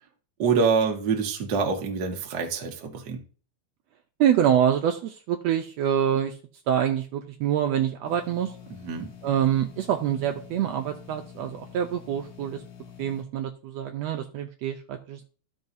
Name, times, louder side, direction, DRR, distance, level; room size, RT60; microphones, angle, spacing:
voice 1, 0.4-3.2 8.8-9.1, right 5 dB, 55° right, 1.2 m, -25 dB
voice 2, 4.2-6.3 6.7-8.5 9.2-12.6 13.0-15.2, right 9 dB, 80° right, 1.6 m, -25 dB
sound 1, 8.0-13.2, left 8 dB, 50° left, 1.9 m, -47 dB
13.5 x 5.4 x 2.7 m
omnidirectional pair, 3.4 m